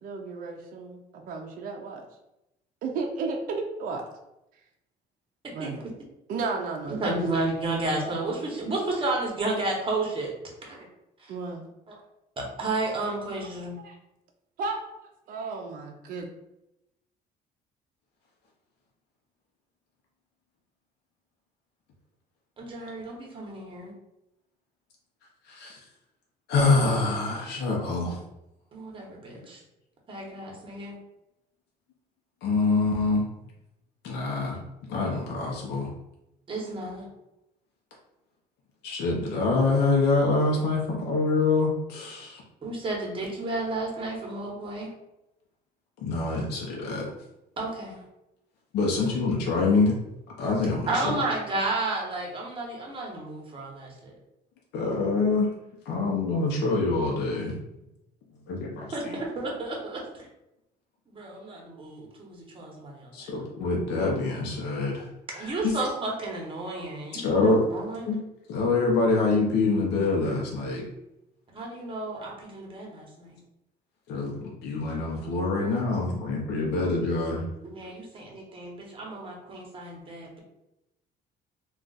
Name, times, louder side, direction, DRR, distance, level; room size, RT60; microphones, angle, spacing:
voice 1, 0.0-2.1 2.8-4.0 5.5-5.8 6.3-7.2 11.3-11.6 13.8-14.0 14.6-16.3, right 4 dB, 55° right, 2 dB, 0.5 m, -34 dB
voice 2, 6.8-10.3 10.7-10.9 11.2-11.3 11.9-12.0 12.4-13.8 22.6-23.9 28.7-29.6 30.1-31.0 36.5-37.1 42.6-44.9 47.6-48.0 50.9-54.1 58.9-60.3 61.1-63.3 65.3-68.1 71.5-73.4 77.6-80.4, right 2 dB, 30° right, -1 dB, 1.0 m, -32 dB
voice 3, 25.5-25.8 26.5-28.2 32.4-33.2 34.0-34.6 34.9-35.9 38.8-42.4 46.0-47.1 48.7-50.0 50.4-51.1 54.7-55.5 55.9-57.6 58.5-59.2 63.1-65.0 65.4-65.7 67.1-67.7 68.1-68.2 68.5-70.8 74.1-77.5, left 3 dB, 80° left, -2 dB, 0.7 m, -25 dB
2.4 x 2.3 x 3.9 m, 0.90 s
cardioid pair, 110°, 17 cm